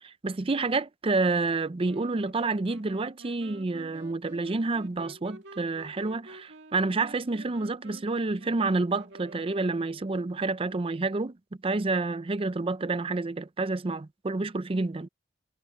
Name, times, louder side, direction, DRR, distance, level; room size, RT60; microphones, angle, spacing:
voice 1, 0.0-11.4 11.6-15.1, right 3 dB, 30° right, 0.5 m, -29 dB
sound 1, 1.8-10.3, right 2 dB, 65° right, 2.6 m, -49 dB
head